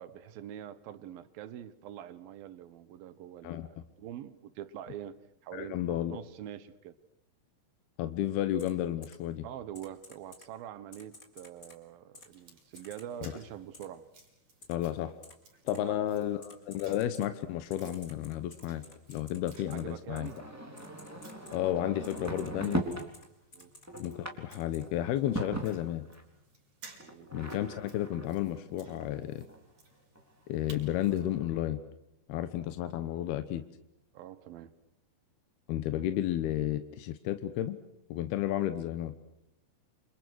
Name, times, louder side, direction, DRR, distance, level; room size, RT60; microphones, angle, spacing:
voice 1, 0.0-5.2 5.4-7.0 9.4-14.1 15.7-16.0 19.7-20.4 23.5-23.7 27.0-27.3 34.1-34.7, right 11 dB, 75° right, 14 dB, 2.2 m, -45 dB
voice 2, 5.5-6.2 8.0-9.5 13.2-13.3 14.7-15.1 15.7-20.3 21.5-22.9 24.0-26.1 27.3-29.5 30.5-31.8 32.3-33.6 35.7-37.8 38.1-39.1, left 12 dB, 70° left, 10 dB, 2.6 m, -32 dB
Typing, 8.6-8.7 9.0-9.1 9.7-10.5 10.9-11.8 12.1-12.3 12.8-13.0 13.7-13.8 14.6-14.7 15.2-15.3 15.7-15.8 16.4-17.3 17.7-19.8 20.2-20.3 20.8-21.6 22.0-23.3 23.5-24.1 24.5-24.8, left 2 dB, 20° left, 3.8 m, -53 dB
sound 1, 12.2-31.3, right 3 dB, 35° right, 6.4 m, -59 dB
sound 2, 20.1-23.1 23.5-26.2 27.0-29.6 30.1-30.2 30.5-30.6 30.8-31.6, right 1 dB, 5° right, 2.8 m, -40 dB
28.5 x 28.5 x 6.3 m, 0.84 s
omnidirectional pair, 5.6 m